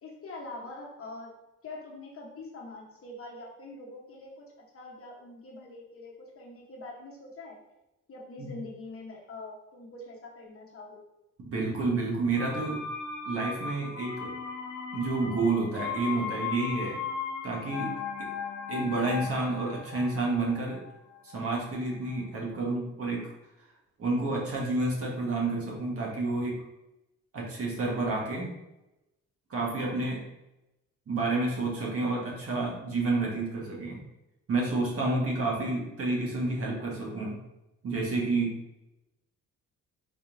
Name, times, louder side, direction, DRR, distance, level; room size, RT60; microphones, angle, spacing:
voice 1, 0.0-1.3 1.6-4.5 4.7-7.6 8.1-11.0, left 2 dB, 45° left, -1 dB, 1.0 m, -44 dB
voice 2, 11.4-12.8 13.2-14.3 14.9-17.0 17.4-18.3 18.7-20.8 21.3-23.3 24.0-26.6 27.3-28.5 29.5-30.2 31.1-34.0 34.5-37.4 37.8-38.8, right 3 dB, 50° right, -3 dB, 1.3 m, -30 dB
sound 1, 12.4-22.1 22.4-22.5, left 6 dB, 80° left, 0.5 m, -37 dB
4.0 x 3.7 x 2.6 m, 0.94 s
cardioid pair, 90°, 30 cm